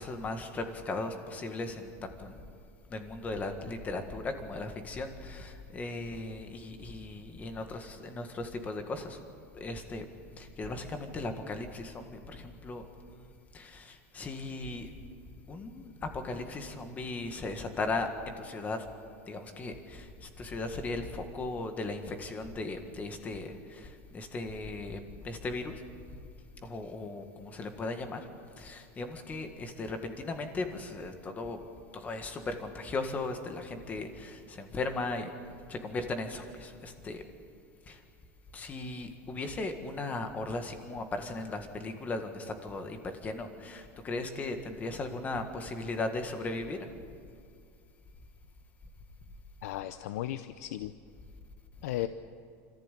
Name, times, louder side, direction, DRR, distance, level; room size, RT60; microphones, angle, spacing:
voice 1, 0.0-2.4 2.9-9.2 9.5-10.1 10.4-14.9 15.5-18.9 19.3-25.8 26.6-28.2 28.6-31.6 31.9-35.3 35.7-37.2 37.9-38.0 38.5-46.9, left 2 dB, 20° left, 6 dB, 1.8 m, -37 dB
voice 2, 49.6-50.9 51.8-52.1, left 14 dB, 80° left, 11 dB, 0.7 m, -35 dB
26.0 x 14.5 x 8.4 m, 2.2 s
supercardioid pair, 160°, 8 cm